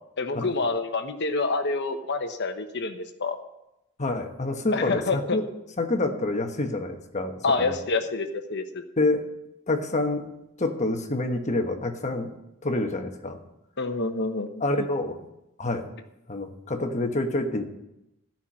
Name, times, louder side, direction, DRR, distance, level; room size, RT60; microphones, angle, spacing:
voice 1, 0.2-3.4 4.7-5.4 7.4-8.8 13.8-14.5 14.8-14.9, left 3 dB, 55° left, 7 dB, 1.1 m, -27 dB
voice 2, 4.0-5.4 5.8-7.8 9.0-9.2 9.7-12.3 12.6-13.4 14.6-15.2 15.6-15.9 16.3-17.6, left 2 dB, 35° left, 5 dB, 1.2 m, -27 dB
14.5 x 5.9 x 8.6 m, 0.90 s
head